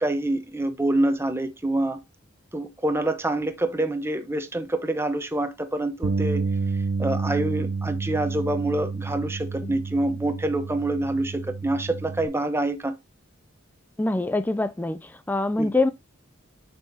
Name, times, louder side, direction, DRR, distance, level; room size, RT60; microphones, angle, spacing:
voice 1, 0.0-2.0 2.5-6.5 7.0-12.9 15.6-15.7, right 1 dB, 10° right, 0.9 m, -26 dB
Bass guitar, 6.0-12.3, right 4 dB, 60° right, 0.5 m, -29 dB
voice 2, 14.0-15.9, left 2 dB, 10° left, 0.3 m, -25 dB
6.9 x 5.6 x 2.7 m
head